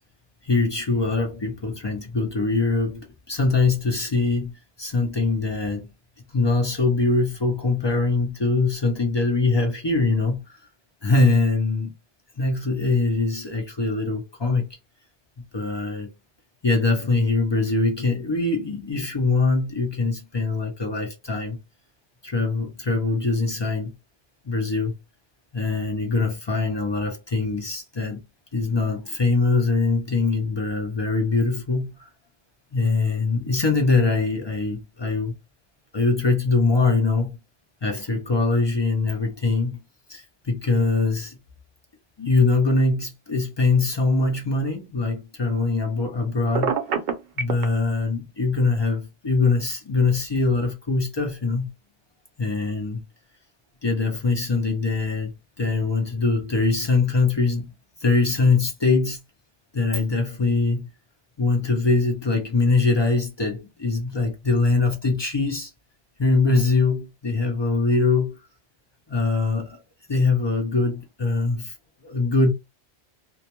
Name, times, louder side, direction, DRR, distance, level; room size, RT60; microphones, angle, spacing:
voice 1, 0.4-4.5 4.8-5.9 6.3-10.6 11.0-11.9 12.4-14.7 15.5-16.1 16.6-21.6 22.2-23.9 24.5-25.0 25.5-28.2 28.5-32.1 32.7-35.3 35.9-37.4 37.8-39.8 40.1-41.4 42.2-46.7 47.4-51.7 52.4-53.0 53.8-55.3 55.6-57.7 58.0-59.2 59.7-60.9 61.4-65.7 66.2-68.3 69.1-69.8 70.1-71.7 72.0-72.5, left 3 dB, 45° left, 0.3 m, -22 dB
Telephone, 46.5-47.7, right 6 dB, 65° right, 0.7 m, -24 dB
2.3 x 2.1 x 2.8 m
omnidirectional pair, 1.1 m